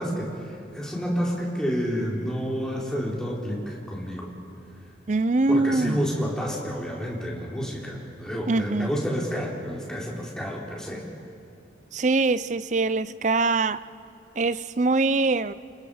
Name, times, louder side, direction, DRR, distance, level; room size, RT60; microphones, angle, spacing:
voice 1, 0.0-4.3 5.5-11.0, equal, 5° left, -4 dB, 4.2 m, -29 dB
voice 2, 5.1-6.0 8.5-8.9 11.9-13.8 14.4-15.5, right 3 dB, 45° right, 15 dB, 0.6 m, -23 dB
29.0 x 28.0 x 5.1 m, 2.7 s
head